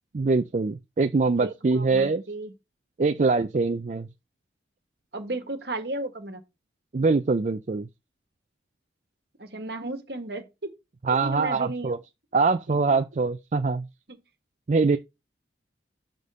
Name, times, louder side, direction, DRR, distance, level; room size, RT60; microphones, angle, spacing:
voice 1, 0.1-2.2 3.0-4.1 6.9-7.9 11.0-12.0 12.3-13.9 14.7-15.0, right 4 dB, 40° right, 0.4 m, -23 dB
voice 2, 1.4-2.5 5.1-6.4 9.4-10.7 11.1-12.0 12.7-12.8 14.1-14.2, right 2 dB, 60° right, 1.5 m, -34 dB
6.4 x 5.2 x 4.9 m
head